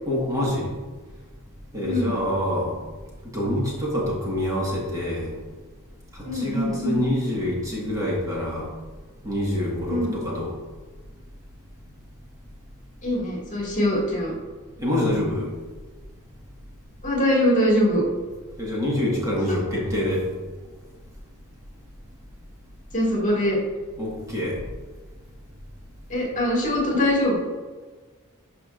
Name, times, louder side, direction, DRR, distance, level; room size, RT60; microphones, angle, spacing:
voice 1, 0.0-0.7 1.7-2.7 3.3-5.3 6.1-8.7 9.2-10.6 14.8-15.5 18.6-20.3 24.0-24.6, left 1 dB, 15° right, -5 dB, 1.6 m, -26 dB
voice 2, 1.8-2.1 6.2-7.0 9.9-10.2 13.0-14.3 17.0-18.0 22.9-23.6 26.1-27.3, left 1 dB, 35° left, -4 dB, 2.1 m, -22 dB
11.5 x 5.1 x 2.5 m, 1.4 s
head